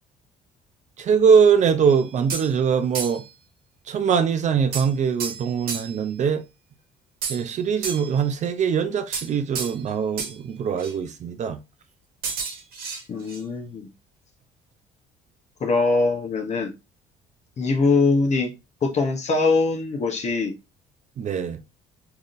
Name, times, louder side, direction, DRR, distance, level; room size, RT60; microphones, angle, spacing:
voice 1, 1.0-3.2 3.9-6.4 7.3-11.6 21.2-21.6, right 6 dB, 45° right, 0.5 m, -22 dB
sound 1, 1.9-2.6 2.9-3.3 4.7-6.0 7.2-8.3 9.1-9.9 10.2-10.4 10.8-10.9 12.2-13.4, right 5 dB, 60° right, 1.1 m, -32 dB
voice 2, 13.1-13.9 15.6-16.7 17.6-18.5 18.8-20.5, left 3 dB, 40° left, 0.9 m, -22 dB
3.6 x 2.8 x 2.5 m
cardioid pair, 110°, 17 cm